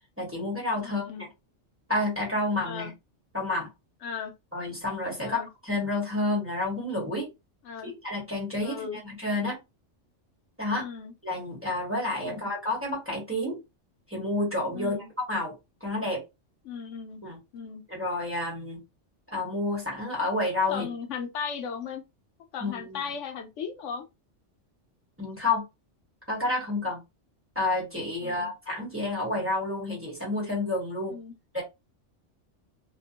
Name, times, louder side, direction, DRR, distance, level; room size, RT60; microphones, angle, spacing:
voice 1, 0.2-1.3 1.9-2.9 3.3-3.7 4.5-7.3 7.8-9.6 10.6-10.9 11.2-13.6 14.1-14.9 15.3-15.5 15.8-16.2 17.2-17.4 17.9-18.8 19.3-20.9 22.6-23.0 25.2-25.6 26.3-27.0 27.5-31.2 31.5-31.6, left 2 dB, 10° right, 1.1 m, -29 dB
voice 2, 0.8-1.3 2.6-2.9 4.0-4.3 5.2-5.5 7.6-7.9 8.6-9.0 10.7-11.1 12.3-12.5 14.7-15.1 16.6-17.2 17.5-17.8 20.7-22.0 22.5-24.1 28.2-28.5 31.1-31.3, left 6 dB, 80° left, 0.9 m, -37 dB
2.6 x 2.1 x 2.7 m
omnidirectional pair, 1.3 m